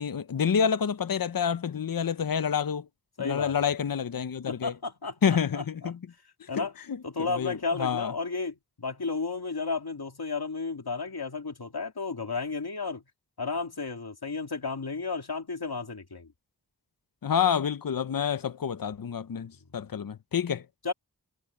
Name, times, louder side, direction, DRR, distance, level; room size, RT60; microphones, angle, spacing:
voice 1, 0.0-2.9 3.2-4.7 5.2-6.0 6.5-6.6 7.2-8.1 17.2-20.6, left 7 dB, 65° left, 0.7 m, -28 dB
voice 2, 3.2-3.7 4.5-5.9 6.5-6.7 7.0-13.0 13.4-16.3 19.7-19.8 20.8-20.9, left 4 dB, 90° left, 2.6 m, -33 dB
wide cardioid pair, 50°, 36 cm